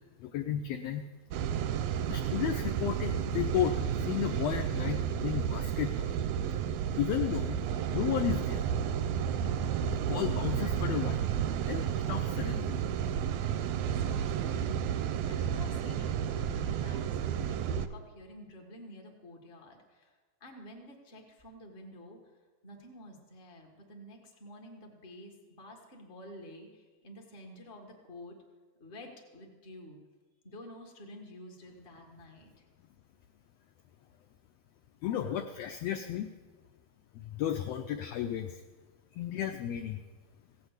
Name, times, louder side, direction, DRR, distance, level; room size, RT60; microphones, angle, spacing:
voice 1, 0.2-1.1 2.1-6.1 6.9-7.6 7.9-8.7 9.9-11.3 11.6-12.7 35.0-36.3 37.1-38.6 39.1-40.0, left 10 dB, 80° left, 6 dB, 1.5 m, -33 dB
sound 1, 1.3-17.9, right 9 dB, 80° right, 1.5 m, -32 dB
voice 2, 13.9-14.6 15.2-20.1 20.4-22.2 22.6-28.4 28.8-30.0 30.4-32.6, left 1 dB, 30° left, 2 dB, 1.1 m, -50 dB
16.5 x 5.9 x 8.0 m, 1.3 s
omnidirectional pair, 3.4 m